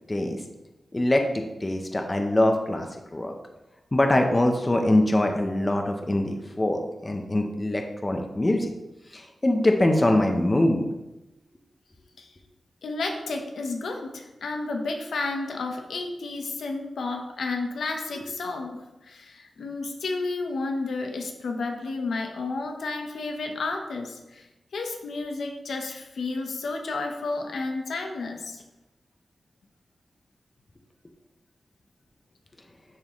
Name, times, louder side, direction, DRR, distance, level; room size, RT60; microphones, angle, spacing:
voice 1, 0.1-0.4 0.9-1.2 1.6-3.3 3.9-8.7 9.1-10.9, left 1 dB, 20° left, 4 dB, 0.7 m, -23 dB
voice 2, 12.8-18.8 19.0-24.4 24.7-28.6, left 3 dB, 90° left, 2 dB, 0.9 m, -31 dB
10.5 x 3.6 x 3.1 m, 1.0 s
wide cardioid pair, 120°, 0 cm